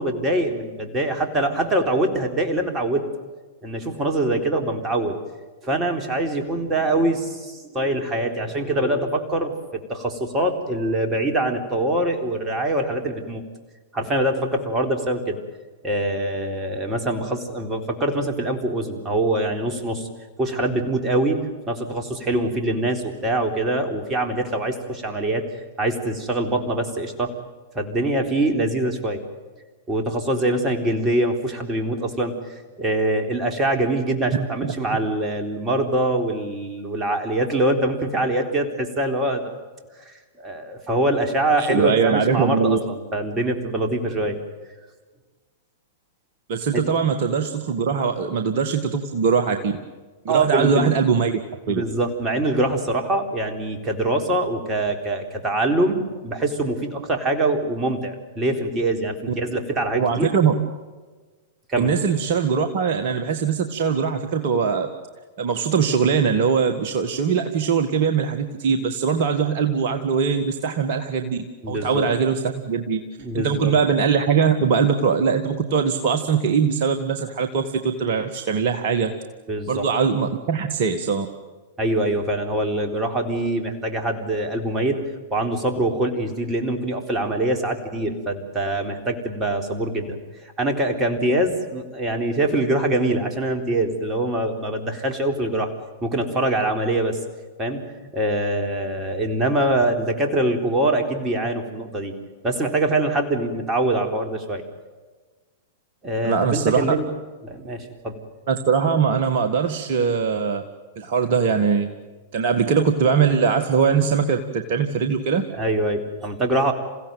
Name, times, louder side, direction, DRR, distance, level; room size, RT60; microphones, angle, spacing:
voice 1, 0.0-3.1 3.6-5.2 5.6-9.5 9.9-13.4 13.9-15.4 15.8-20.1 20.4-21.4 21.7-25.4 25.8-27.4 27.7-29.2 29.9-32.3 32.8-39.4 40.1-44.4 46.7-46.8 50.3-50.9 51.7-60.3 61.7-61.9 71.6-72.1 73.2-73.7 79.5-79.9 81.8-85.0 85.3-95.7 96.0-97.2 97.6-102.1 102.4-104.6 106.0-107.1 107.4-108.2 115.6-116.7, right 1 dB, 20° right, 4 dB, 3.8 m, -24 dB
voice 2, 41.6-42.8 46.5-49.7 50.2-51.4 51.7-51.8 59.9-60.5 61.8-64.9 65.4-73.0 73.3-79.1 79.7-81.3 106.2-106.9 108.5-110.6 111.0-111.9 112.3-115.4, right 6 dB, 50° right, 6 dB, 1.7 m, -21 dB
28.5 x 16.5 x 9.2 m, 1.3 s
figure-of-eight pair, 100°, 0 cm